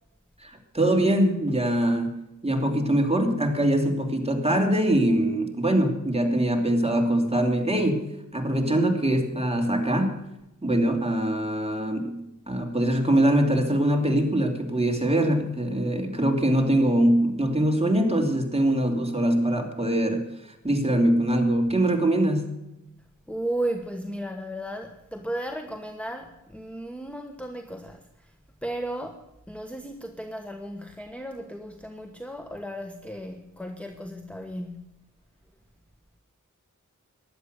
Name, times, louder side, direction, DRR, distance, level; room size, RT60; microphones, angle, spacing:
voice 1, 0.4-2.2 2.4-8.0 8.3-10.1 10.6-12.2 12.5-20.2 20.6-22.5, right 1 dB, 20° right, 2.9 m, -23 dB
voice 2, 23.3-28.3 28.6-35.0, right 1 dB, 5° left, 1.2 m, -35 dB
16.0 x 11.0 x 6.7 m
wide cardioid pair, 50°, 32 cm